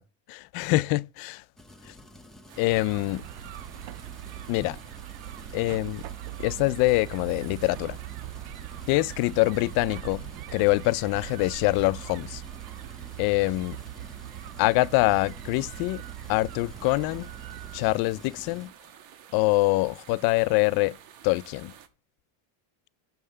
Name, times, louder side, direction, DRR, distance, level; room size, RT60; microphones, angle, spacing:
voice 1, 0.3-1.4 1.9-2.0 2.6-3.2 4.5-4.8 5.5-6.0 6.4-8.0 8.9-12.4 13.2-13.8 14.6-16.0 16.3-17.3 17.7-18.7 19.3-21.0 21.2-21.7, left 21 dB, 60° left, 0.5 m, -25 dB
sound 1, 1.6-18.7, left 1 dB, ahead, 0.8 m, -50 dB
sound 2, 2.5-21.9, right 9 dB, 80° right, 1.4 m, -51 dB
sound 3, 2.7-18.0, right 14 dB, 60° right, 0.6 m, -41 dB
7.5 x 5.6 x 6.6 m
cardioid pair, 150°, 42 cm